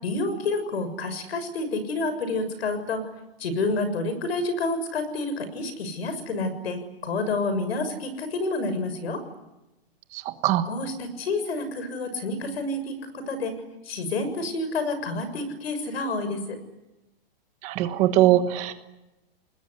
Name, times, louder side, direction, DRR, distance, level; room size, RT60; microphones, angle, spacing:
voice 1, 0.0-3.0 3.4-9.2 10.7-13.5 13.8-16.6, left 2 dB, 90° left, 11 dB, 6.8 m, -29 dB
voice 2, 17.6-18.9, right 13 dB, 20° right, 9 dB, 1.3 m, -21 dB
29.0 x 20.0 x 9.8 m, 0.98 s
supercardioid pair, 175°, 30 cm